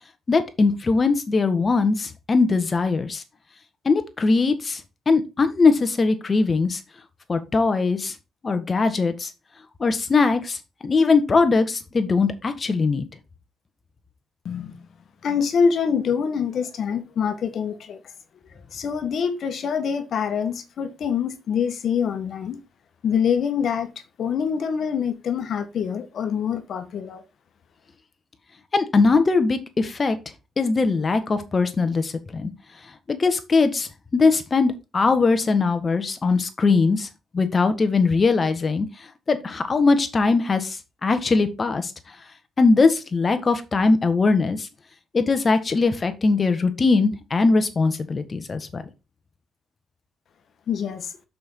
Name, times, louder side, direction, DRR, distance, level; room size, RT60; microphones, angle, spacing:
voice 1, 0.3-3.2 3.8-4.8 5.1-6.8 7.3-8.1 8.4-9.3 9.8-13.0 28.7-30.2 30.6-32.5 33.1-37.1 37.3-38.9 39.3-41.9 42.6-44.7 45.1-48.8, left 4 dB, 35° left, 1.6 m, -21 dB
voice 2, 14.4-14.8 15.2-18.0 18.7-22.6 23.0-23.9 24.2-27.2 50.7-51.1, left 7 dB, 60° left, 1.6 m, -25 dB
6.1 x 5.6 x 4.6 m
cardioid pair, 90°, 0 cm